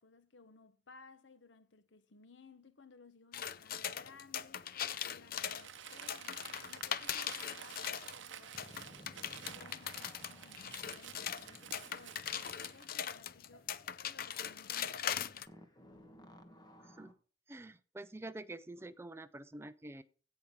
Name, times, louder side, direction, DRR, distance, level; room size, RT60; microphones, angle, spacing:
voice 1, 0.0-4.7 5.0-9.1 9.5-13.8 14.0-15.5, left 4 dB, 65° left, 0.9 m, -60 dB
sound 1, 3.3-8.2 8.6-15.5, left 9 dB, 50° left, 0.5 m, -40 dB
Crumpling crinkling, 5.3-12.9, right 9 dB, 70° right, 0.7 m, -51 dB
sound 2, 8.5-17.1, left 1 dB, 20° left, 1.3 m, -59 dB
voice 2, 16.8-17.1 17.5-20.0, right 2 dB, 15° right, 0.4 m, -47 dB
16.5 x 5.8 x 3.6 m
head